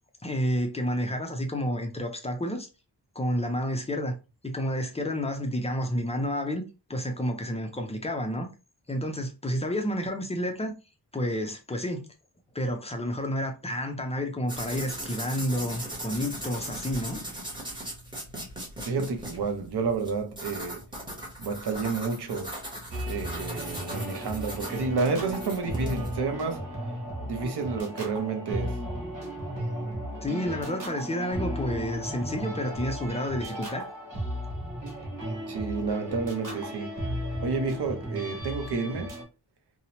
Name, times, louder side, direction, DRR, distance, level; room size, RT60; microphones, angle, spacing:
voice 1, 0.2-2.7 3.2-4.1 4.4-6.6 6.9-8.5 8.9-10.7 11.1-12.1 12.5-17.3 30.2-33.9, equal, 15° left, 0.3 m, -30 dB
sound 1, 14.5-26.1, right 1 dB, 10° right, 0.8 m, -39 dB
voice 2, 18.8-20.8 21.4-22.5 23.1-26.6 27.2-28.8 35.5-37.0 37.4-39.1, right 4 dB, 65° right, 0.7 m, -30 dB
sound 2, 22.9-39.2, equal, 50° right, 1.2 m, -35 dB
2.8 x 2.0 x 2.7 m
wide cardioid pair, 175°, 43 cm